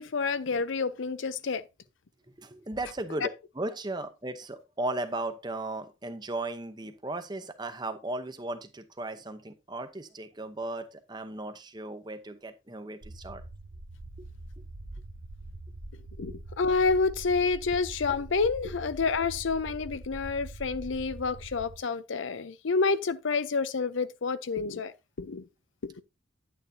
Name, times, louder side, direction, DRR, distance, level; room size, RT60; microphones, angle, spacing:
voice 1, 0.0-1.6 3.2-3.3 16.2-25.4 25.8-25.9, left 4 dB, 70° left, 0.6 m, -29 dB
voice 2, 2.4-3.3 3.5-13.4 14.2-14.3 18.6-18.7, right 2 dB, 20° right, 0.8 m, -36 dB
sound 1, 13.0-21.8, right 1 dB, 70° right, 1.0 m, -43 dB
9.8 x 9.1 x 2.7 m
head